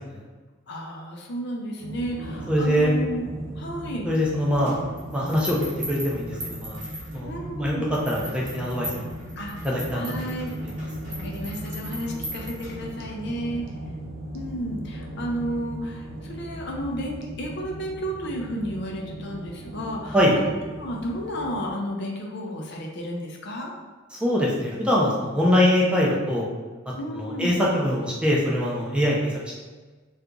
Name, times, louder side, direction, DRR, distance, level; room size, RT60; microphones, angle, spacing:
voice 1, 0.7-3.2 3.6-4.1 7.2-7.9 9.4-10.5 11.1-13.7 14.3-20.5 20.8-23.7 27.0-27.6, equal, 60° left, 0 dB, 0.5 m, -32 dB
sound 1, 1.8-21.7, right 1 dB, 80° right, 0.5 m, -37 dB
voice 2, 2.5-2.9 4.1-4.8 5.1-5.6 5.9-6.8 7.1-7.8 8.1-9.1 9.6-10.1 20.1-20.3 24.2-26.4 27.2-29.5, equal, 5° right, -5 dB, 0.5 m, -23 dB
sound 2, 4.6-7.5 7.9-13.1, equal, 40° right, 1.1 m, -39 dB
2.8 x 2.4 x 3.6 m, 1.3 s
head